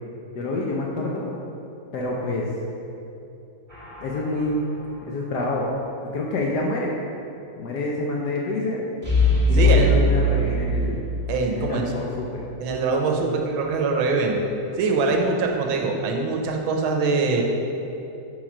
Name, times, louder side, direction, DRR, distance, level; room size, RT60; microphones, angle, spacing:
voice 1, 0.3-1.3 1.9-2.6 4.0-4.7 5.0-5.8 6.0-6.9 7.6-8.9 9.5-11.0 11.5-12.4, left 2 dB, 70° left, -2 dB, 1.0 m, -27 dB
sound 1, 3.7-4.6 9.0-12.0 12.3-12.4, left 1 dB, 10° right, 1.1 m, -22 dB
voice 2, 9.5-9.9 11.3-11.9 12.6-14.4 14.8-17.4, right 4 dB, 75° right, 2 dB, 1.5 m, -23 dB
6.1 x 4.1 x 5.9 m, 2.8 s
omnidirectional pair, 2.3 m